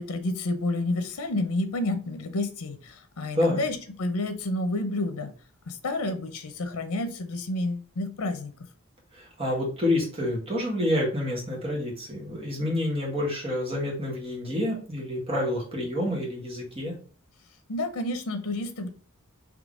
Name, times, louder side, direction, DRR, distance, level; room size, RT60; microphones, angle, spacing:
voice 1, 0.0-5.3 5.7-8.5 17.7-18.9, left 2 dB, 85° left, 8 dB, 0.7 m, -30 dB
voice 2, 9.1-16.9, left 1 dB, 25° right, -2 dB, 1.6 m, -28 dB
3.8 x 3.3 x 3.6 m, 0.41 s
head